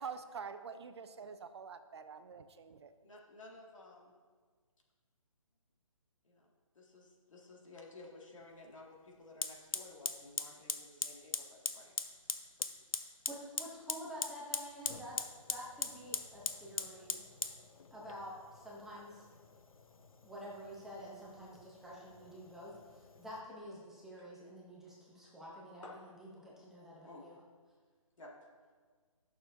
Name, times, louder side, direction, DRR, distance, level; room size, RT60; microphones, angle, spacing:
voice 1, 0.0-2.9, right 6 dB, 50° right, 9 dB, 0.5 m, -46 dB
voice 2, 3.0-4.1 6.2-6.5 6.7-11.9 24.2-24.3 25.8-26.0 27.0-27.3 28.2-28.3, left 2 dB, 65° left, -2 dB, 2.0 m, -54 dB
Fire, 8.4-8.5 9.4-23.4, left 5 dB, 85° left, 0.7 m, -42 dB
voice 3, 13.3-17.3 17.9-19.3 20.2-27.4, equal, ahead, -6 dB, 0.8 m, -49 dB
12.0 x 6.6 x 2.6 m, 1.6 s
figure-of-eight pair, 150°, 18 cm